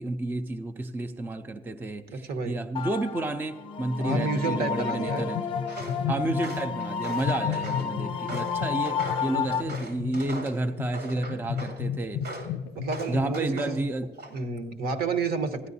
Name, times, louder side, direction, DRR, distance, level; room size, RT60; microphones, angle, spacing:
voice 1, 0.0-5.4 6.1-12.2 13.1-14.1, right 2 dB, 10° right, 7 dB, 0.4 m, -31 dB
voice 2, 2.1-2.6 4.0-5.3 12.7-13.9 14.3-15.7, right 4 dB, 65° right, 9 dB, 1.0 m, -30 dB
sound 1, 2.8-9.6, left 6 dB, 30° left, 0.7 m, -31 dB
sound 2, 4.1-4.7 5.0-6.7 7.2-13.3, left 9 dB, 65° left, 0.4 m, -34 dB
Walk footsteps, 5.6-6.0 6.4-7.9 8.3-10.6 10.9-11.8 12.2-12.5 12.9-13.8 14.1-14.6, right 2 dB, 85° right, 2.4 m, -40 dB
15.5 x 10.0 x 2.7 m, 1.3 s
cardioid pair, 110°, 17 cm